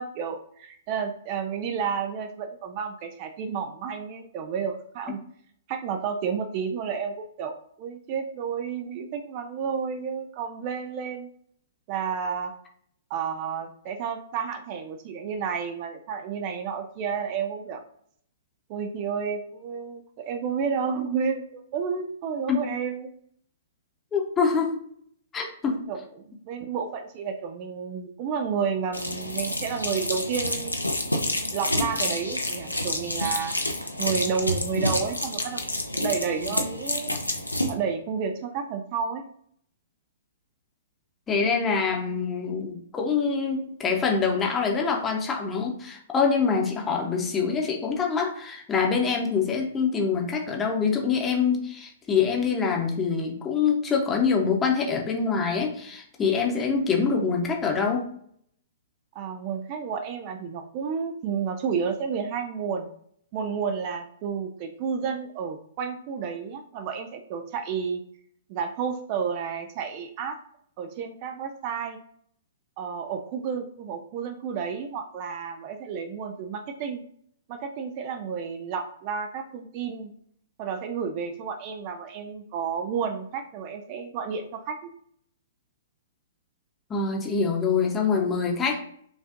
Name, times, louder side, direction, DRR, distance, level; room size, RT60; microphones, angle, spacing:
voice 1, 0.0-5.2 5.7-11.3 11.9-12.6 13.1-17.8 18.7-23.1 25.9-26.0 26.4-30.8 31.5-33.6 34.0-35.6 35.9-37.1 37.7-39.2 59.1-62.9 63.3-68.0 68.5-70.4 70.8-72.0 72.8-77.0 77.5-80.1 80.6-84.9, right 6 dB, 35° right, 6 dB, 0.4 m, -31 dB
voice 2, 24.1-24.8 25.3-25.8 36.4-36.5 41.3-58.1 86.9-88.8, left 5 dB, 15° left, 0 dB, 0.8 m, -25 dB
sound 1, 28.9-37.7, left 1 dB, 90° left, 0.6 m, -28 dB
6.8 x 2.5 x 2.5 m, 0.65 s
figure-of-eight pair, 115°, 0 cm